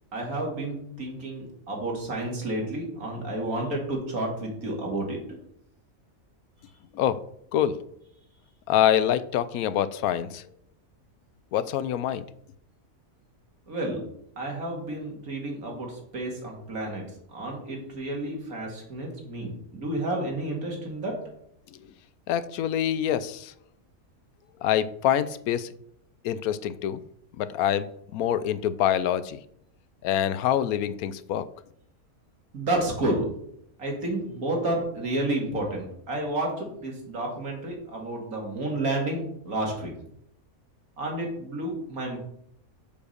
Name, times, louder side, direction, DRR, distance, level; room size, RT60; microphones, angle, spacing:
voice 1, 0.1-5.4 13.7-14.0 14.4-17.0 17.3-21.2 32.5-33.3 33.8-39.9 41.0-42.2, right 1 dB, 80° right, 0 dB, 2.7 m, -31 dB
voice 2, 8.7-10.4 11.5-12.3 22.3-23.5 24.6-25.7 26.2-27.0 27.4-29.4 30.0-31.5, left 10 dB, 85° left, 14 dB, 1.0 m, -25 dB
7.0 x 5.1 x 6.4 m, 0.72 s
omnidirectional pair, 1.5 m